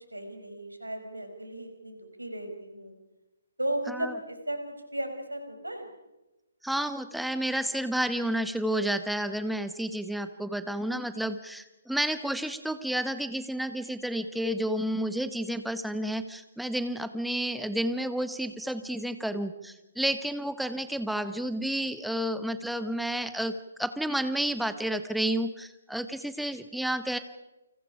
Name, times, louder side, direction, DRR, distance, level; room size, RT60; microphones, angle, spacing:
voice 1, 0.1-2.9 3.6-5.9, right 1 dB, 90° right, 6 dB, 5.1 m, -35 dB
voice 2, 6.6-23.5 23.8-27.2, right 1 dB, ahead, 10 dB, 1.3 m, -31 dB
29.5 x 25.5 x 5.0 m, 1.0 s
figure-of-eight pair, 135°, 0 cm